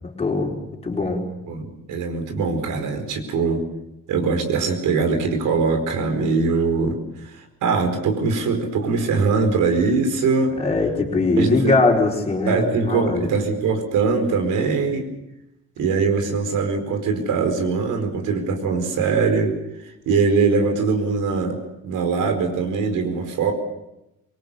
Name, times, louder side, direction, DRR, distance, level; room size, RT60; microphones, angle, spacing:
voice 1, 0.0-0.6 0.8-1.2 10.6-13.3, left 3 dB, 20° left, -1 dB, 4.5 m, -21 dB
voice 2, 1.5-3.6 4.1-10.5 11.4-11.7 12.4-15.1 15.8-19.5 19.8-23.5, right 4 dB, 85° right, 5 dB, 4.7 m, -22 dB
25.0 x 22.5 x 7.0 m, 0.89 s
cardioid pair, 160°, 30 cm